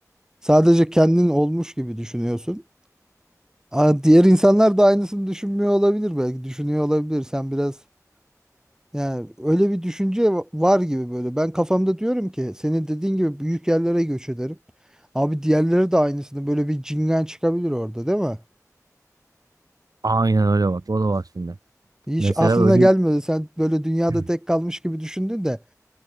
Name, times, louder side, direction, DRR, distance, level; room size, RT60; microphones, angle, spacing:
voice 1, 0.4-2.6 3.7-7.8 8.9-14.6 15.1-18.4 22.1-25.6, equal, 10° right, 4.4 m, -20 dB
voice 2, 20.0-21.5 22.2-22.9 24.1-24.2, right 3 dB, 80° right, 2.1 m, -21 dB
wide cardioid pair, 45°, 6 cm